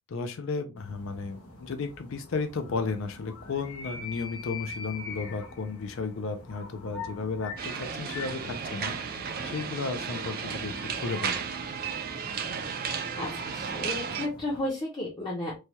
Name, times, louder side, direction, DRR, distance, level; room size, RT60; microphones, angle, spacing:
voice 1, 0.1-9.0 9.4-11.4, left 4 dB, 60° left, 7 dB, 0.4 m, -34 dB
sound 1, 0.8-14.7, left 4 dB, 90° left, 0.9 m, -44 dB
sound 2, 7.6-14.3, right 6 dB, 45° right, 0.4 m, -34 dB
voice 2, 13.2-15.6, left 1 dB, 20° left, -4 dB, 0.6 m, -33 dB
3.2 x 2.2 x 2.7 m, 0.27 s
head